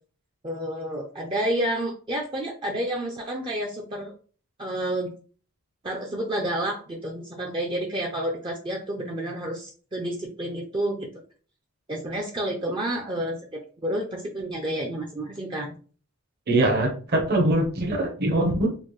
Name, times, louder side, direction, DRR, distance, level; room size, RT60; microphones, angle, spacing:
voice 1, 0.4-4.1 4.6-5.1 5.8-11.1 11.9-15.7, right 1 dB, 20° right, 0 dB, 0.4 m, -30 dB
voice 2, 16.5-18.7, right 1 dB, 45° right, 1 dB, 0.8 m, -22 dB
4.2 x 2.1 x 3.1 m, 0.40 s
head